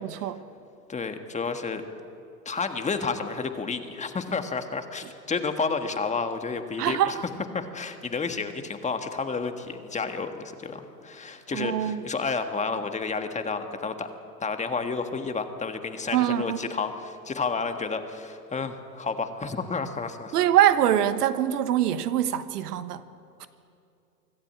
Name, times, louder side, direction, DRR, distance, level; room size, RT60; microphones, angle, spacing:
voice 1, 0.0-0.4 6.8-7.2 11.5-12.0 16.1-16.6 20.3-23.0 23.4-23.5, right 11 dB, 70° right, 12 dB, 1.3 m, -24 dB
voice 2, 0.9-1.8 2.4-7.2 7.5-14.1 14.4-20.3, left 4 dB, 15° left, 7 dB, 1.5 m, -31 dB
24.5 x 13.5 x 8.7 m, 2.6 s
hypercardioid pair, 105°, 49 cm